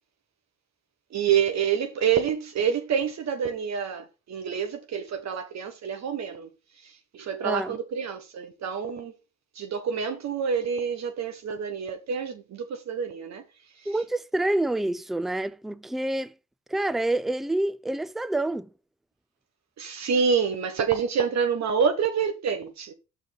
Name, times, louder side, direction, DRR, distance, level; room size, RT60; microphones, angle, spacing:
voice 1, 1.1-6.5 6.8-9.1 9.5-13.4 19.8-22.9, right 7 dB, 65° right, 1.2 m, -27 dB
voice 2, 7.4-7.8 13.9-16.3 16.7-18.7, right 1 dB, ahead, 0.4 m, -27 dB
6.2 x 5.1 x 5.9 m
cardioid pair, 90°, 30 cm